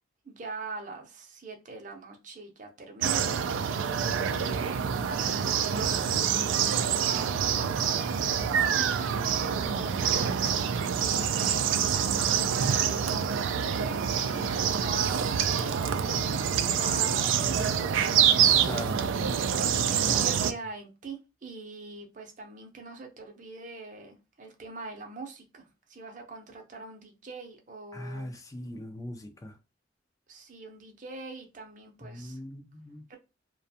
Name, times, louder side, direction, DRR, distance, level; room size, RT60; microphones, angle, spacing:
voice 1, 0.2-12.1 12.6-14.1 14.4-18.3 19.9-28.3 30.3-32.4 33.1-33.2, right 3 dB, 40° right, 0.6 m, -43 dB
sound 1, 3.0-20.5, right 7 dB, 90° right, 0.3 m, -26 dB
voice 2, 18.7-19.1 20.1-20.2 27.9-29.6 32.0-33.0, left 1 dB, 20° left, 0.4 m, -40 dB
2.4 x 2.2 x 2.7 m
head